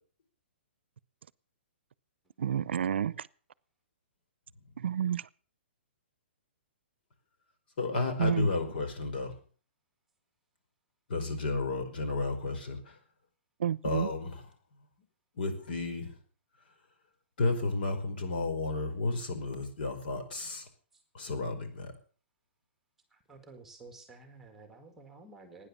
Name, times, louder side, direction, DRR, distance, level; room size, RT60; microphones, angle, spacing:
voice 1, 2.4-3.3 4.8-5.2 8.2-8.5 13.6-14.1, right 9 dB, 70° right, 0.7 m, -30 dB
voice 2, 7.8-9.4 11.1-13.0 13.8-14.4 15.4-16.1 17.4-20.6 21.1-21.9, left 3 dB, 50° left, 4.9 m, -32 dB
voice 3, 23.1-25.7, right 3 dB, 5° right, 1.9 m, -52 dB
18.5 x 10.0 x 7.1 m
hypercardioid pair, 170°, 6 cm